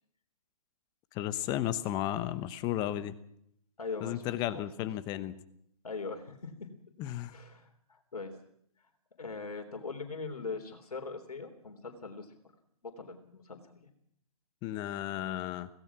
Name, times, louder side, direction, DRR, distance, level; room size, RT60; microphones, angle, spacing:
voice 1, 1.1-3.1 4.0-5.4 7.0-7.3 14.6-15.7, left 13 dB, 20° left, 14 dB, 1.0 m, -34 dB
voice 2, 3.8-4.9 5.8-6.7 7.3-8.3 9.2-12.4 12.8-13.9, left 4 dB, 80° left, 5 dB, 3.5 m, -41 dB
25.5 x 17.5 x 6.1 m, 0.71 s
hypercardioid pair, 140°, 19 cm